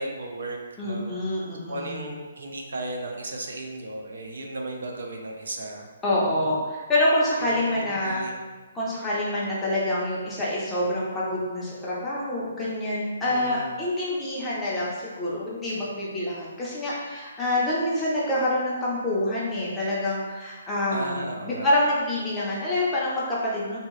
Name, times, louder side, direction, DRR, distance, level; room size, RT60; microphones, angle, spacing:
voice 1, 0.0-1.1 1.6-5.9 7.4-8.5 13.2-13.7 20.9-21.8, right 2 dB, 75° right, 2 dB, 0.5 m, -35 dB
voice 2, 0.8-2.1 6.0-8.2 8.7-23.8, left 1 dB, 5° left, -7 dB, 0.5 m, -26 dB
2.8 x 2.6 x 3.0 m, 1.3 s
hypercardioid pair, 175°, 0 cm